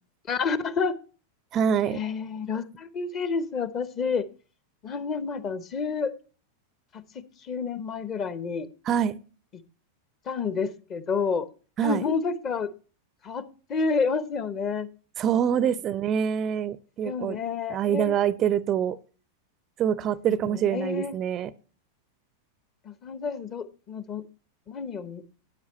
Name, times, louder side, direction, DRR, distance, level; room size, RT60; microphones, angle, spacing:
voice 1, 0.3-0.9 1.9-4.3 4.8-6.1 6.9-8.7 10.3-11.5 11.8-12.7 13.2-13.4 13.7-14.9 17.0-18.2 20.5-21.1 22.9-24.2 24.7-25.2, left 5 dB, 30° left, 15 dB, 0.9 m, -29 dB
voice 2, 1.5-2.0 8.8-9.1 11.8-12.0 15.2-17.4 17.7-19.0 19.8-21.5, right 9 dB, 30° right, 19 dB, 0.4 m, -25 dB
12.5 x 9.4 x 3.1 m, 0.37 s
figure-of-eight pair, 90°, 0 cm